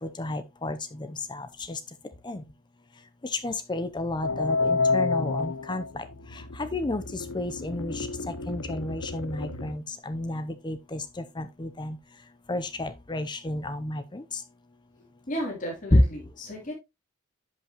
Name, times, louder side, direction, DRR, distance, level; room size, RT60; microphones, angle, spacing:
voice 1, 0.0-0.8 1.3-1.8 2.3-2.4 3.3-6.0 6.6-7.0 7.3-8.1 8.5-11.0 11.4-12.0 12.5-14.2 15.9-16.0, left 1 dB, 20° left, 0.6 m, -30 dB
sound 1, 4.2-9.7, left 3 dB, 70° left, 0.8 m, -29 dB
voice 2, 15.3-16.7, equal, 35° left, 3.2 m, -34 dB
10.5 x 5.7 x 3.0 m
head